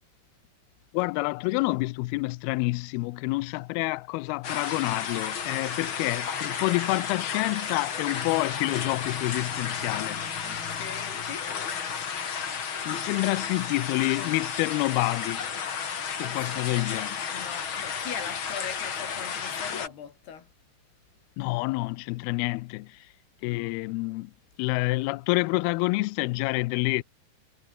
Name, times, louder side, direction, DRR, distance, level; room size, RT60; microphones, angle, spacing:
voice 1, 0.9-10.3 12.9-15.5 16.2-17.3 21.4-23.1 23.4-24.3 24.6-27.0, left 23 dB, 85° left, 2.2 m, -28 dB
sound 1, 4.4-19.9, left 7 dB, 40° left, 2.0 m, -33 dB
voice 2, 10.4-11.8 16.2-17.0 17.3-20.5 23.4-23.7, left 8 dB, 65° left, 5.4 m, -41 dB
omnidirectional pair, 5.1 m